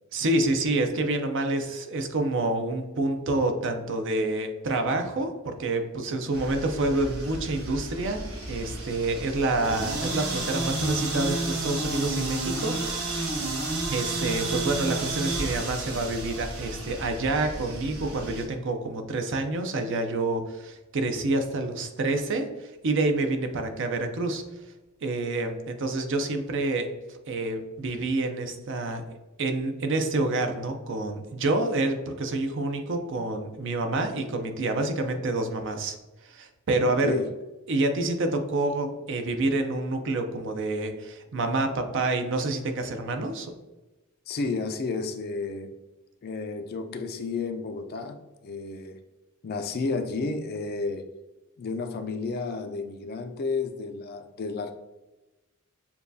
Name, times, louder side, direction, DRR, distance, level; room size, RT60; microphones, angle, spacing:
voice 1, 0.1-13.1 13.9-24.4 25.0-29.0 29.4-36.0 36.2-37.2 37.7-43.5, right 2 dB, 60° right, 6 dB, 0.6 m, -28 dB
sound 1, 6.3-18.5, right 2 dB, 85° right, 1.1 m, -32 dB
voice 2, 36.8-37.3 44.3-45.7 46.2-49.0 49.4-51.0 51.6-54.7, left 4 dB, 45° left, 7 dB, 0.4 m, -31 dB
6.9 x 2.3 x 2.7 m, 1.1 s
head